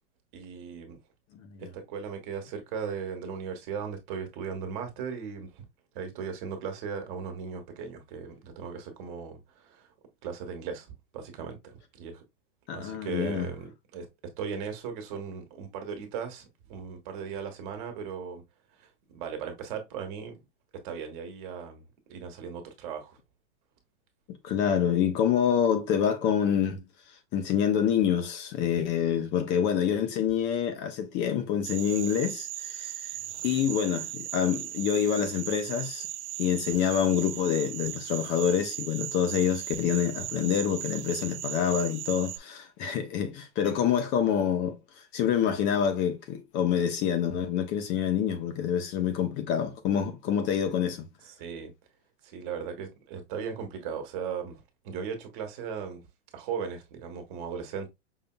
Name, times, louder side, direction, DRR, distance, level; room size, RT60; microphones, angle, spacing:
voice 1, 0.3-1.0 1.6-5.6 5.9-9.9 10.2-10.9 11.1-12.2 12.7-14.1 14.4-18.4 18.8-20.4 20.7-21.8 22.1-23.2 33.2-33.4 51.3-51.7 52.2-56.0 56.3-57.9, right 6 dB, 45° right, 1.3 m, -37 dB
voice 2, 12.7-13.5 24.4-26.8 27.3-32.9 33.4-36.1 36.4-44.8 45.1-51.1, left 8 dB, 30° left, 0.7 m, -27 dB
sound 1, 31.6-42.4, right 13 dB, 70° right, 0.6 m, -37 dB
5.6 x 2.7 x 2.2 m
hypercardioid pair, 125°, 36 cm